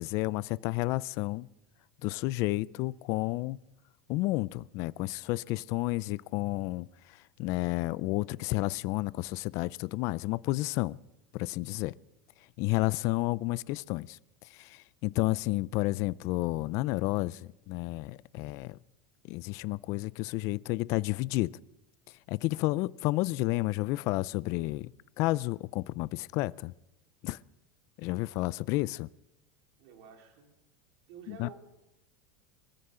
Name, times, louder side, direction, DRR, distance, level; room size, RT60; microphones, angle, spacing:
voice 1, 0.0-1.5 2.0-3.6 4.1-6.9 7.4-11.0 11.3-11.9 12.6-14.2 14.5-18.8 19.3-21.5 22.3-24.9 25.2-26.7 27.2-27.4 28.0-29.1 31.3-31.5, left 20 dB, 50° left, 0.4 m, -31 dB
voice 2, 29.8-30.6 31.1-31.5, right 6 dB, 65° right, 4.1 m, -50 dB
26.0 x 14.0 x 3.8 m
supercardioid pair, 140°, 7 cm